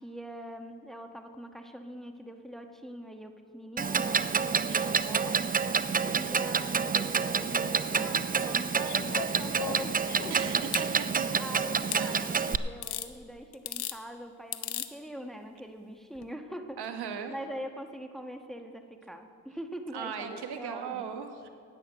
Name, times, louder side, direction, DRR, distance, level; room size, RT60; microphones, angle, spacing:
voice 1, 0.0-5.3 6.1-10.4 11.3-16.8 17.3-21.1, equal, ahead, 5 dB, 1.3 m, -43 dB
Clock, 3.8-12.6, right 5 dB, 20° right, 0.5 m, -28 dB
voice 2, 4.5-4.9 10.3-11.3 12.0-12.4 16.8-17.3 19.9-21.5, right 7 dB, 65° right, 6 dB, 1.4 m, -38 dB
sound 1, 8.8-10.9 11.9-12.0 12.8-13.1 13.5-14.0 14.5-14.9 16.2-16.3, left 11 dB, 65° left, 0.9 m, -37 dB
11.5 x 9.5 x 7.9 m, 2.2 s
supercardioid pair, 55°, 42 cm